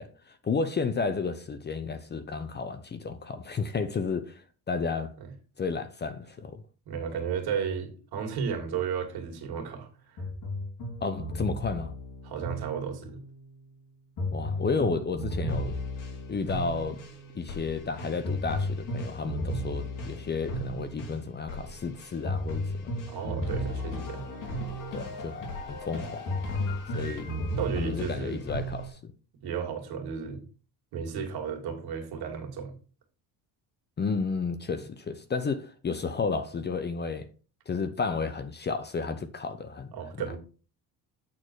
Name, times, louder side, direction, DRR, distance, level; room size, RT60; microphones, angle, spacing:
voice 1, 0.0-5.1 5.6-6.6 11.0-11.9 14.3-15.7 16.3-17.0 17.3-22.9 24.9-26.2 26.9-27.3 27.8-29.1 34.0-37.3 37.7-39.9, left 4 dB, 25° left, 0.7 m, -32 dB
voice 2, 6.9-10.2 12.2-13.2 23.1-24.3 27.6-28.5 29.4-30.4 30.9-32.7 39.9-40.4, right 6 dB, 65° right, 2.5 m, -33 dB
sound 1, 10.2-13.3 14.2-28.9, left 1 dB, 50° left, 2.9 m, -34 dB
8.6 x 4.3 x 4.7 m
cardioid pair, 120°, 40 cm